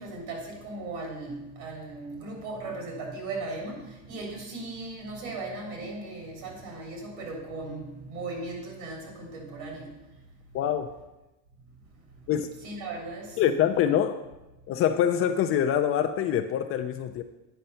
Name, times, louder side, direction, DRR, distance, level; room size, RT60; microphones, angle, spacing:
voice 1, 0.0-9.9 12.6-13.4, right 2 dB, 65° right, 0 dB, 3.6 m, -37 dB
voice 2, 10.5-10.9 12.3-12.5 13.4-14.2 14.7-17.2, left 9 dB, 35° left, 7 dB, 0.4 m, -25 dB
9.1 x 5.4 x 5.5 m, 0.99 s
supercardioid pair, 145°, 40 cm